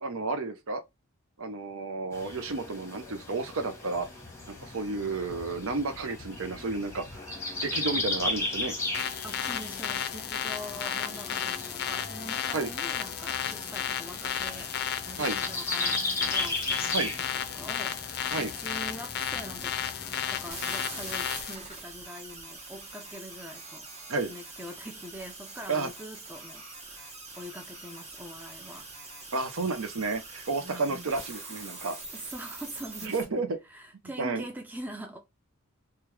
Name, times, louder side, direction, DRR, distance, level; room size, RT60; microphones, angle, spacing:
voice 1, 0.0-0.8 1.4-4.1 4.5-7.3 7.6-8.7 12.5-12.7 15.2-15.4 16.9-17.1 18.3-18.5 24.1-24.3 25.7-25.9 29.3-32.0 33.0-33.6 34.2-34.4, right 3 dB, 65° right, 0.7 m, -31 dB
sound 1, 2.1-21.4, left 2 dB, 15° left, 1.0 m, -37 dB
sound 2, 8.9-21.6, left 9 dB, 50° left, 0.5 m, -33 dB
voice 2, 9.2-14.7 15.0-17.1 17.5-19.8 20.3-23.9 24.3-28.9 30.6-31.1 32.1-35.2, equal, 10° right, 0.5 m, -44 dB
sound 3, 20.5-33.2, right 3 dB, 30° right, 1.0 m, -44 dB
3.1 x 2.4 x 3.1 m
head